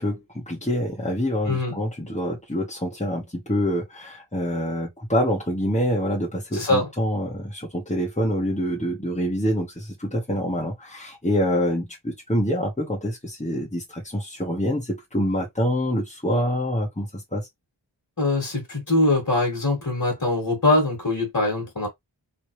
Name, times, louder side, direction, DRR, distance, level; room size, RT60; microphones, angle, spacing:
voice 1, 0.0-17.5, equal, 15° left, 1.3 m, -26 dB
voice 2, 1.4-1.8 6.5-6.9 18.2-21.9, left 2 dB, 40° left, 1.9 m, -22 dB
3.7 x 3.3 x 3.1 m
wide cardioid pair, 45°, 47 cm